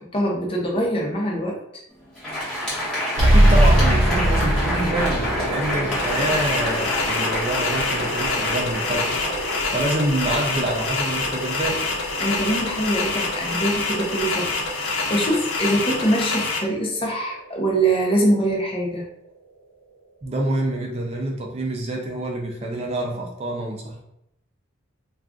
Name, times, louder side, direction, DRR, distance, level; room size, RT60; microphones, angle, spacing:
voice 1, 0.0-1.8 12.2-19.1, right 1 dB, 25° left, -1 dB, 0.6 m, -24 dB
Crowd, 2.0-10.5, left 1 dB, 5° left, 1.0 m, -28 dB
voice 2, 3.2-11.8 20.2-24.0, right 1 dB, 30° right, 1 dB, 0.4 m, -27 dB
sound 1, 3.2-18.3, right 1 dB, 70° right, 0.7 m, -25 dB
sound 2, 5.9-16.6, left 3 dB, 70° left, 0.6 m, -26 dB
2.4 x 2.3 x 3.6 m, 0.79 s
head